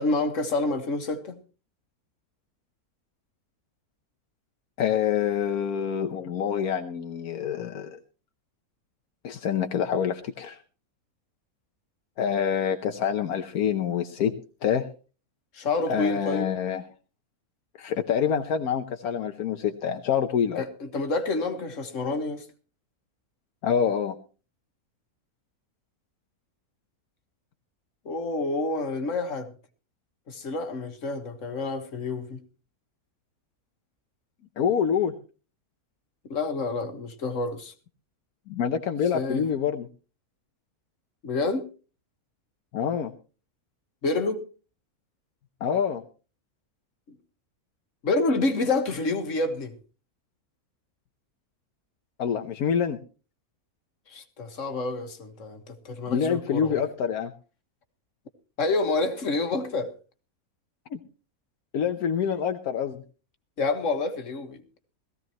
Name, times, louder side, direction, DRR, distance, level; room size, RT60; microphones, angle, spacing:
voice 1, 0.0-1.4 15.5-16.5 20.6-22.5 28.1-29.5 30.3-32.4 36.3-37.7 39.1-39.4 41.2-41.7 44.0-44.4 48.0-49.7 54.1-56.8 58.6-59.9 63.6-64.6, left 3 dB, 60° left, 1.9 m, -28 dB
voice 2, 4.8-8.0 9.2-10.6 12.2-14.3 14.6-14.9 15.9-16.8 17.8-20.6 23.6-24.2 34.6-35.1 38.5-39.9 42.7-43.1 45.6-46.0 52.2-53.0 56.1-57.3 60.9-61.0 61.7-63.0, left 8 dB, 80° left, 1.3 m, -26 dB
18.0 x 15.5 x 3.0 m
omnidirectional pair, 1.6 m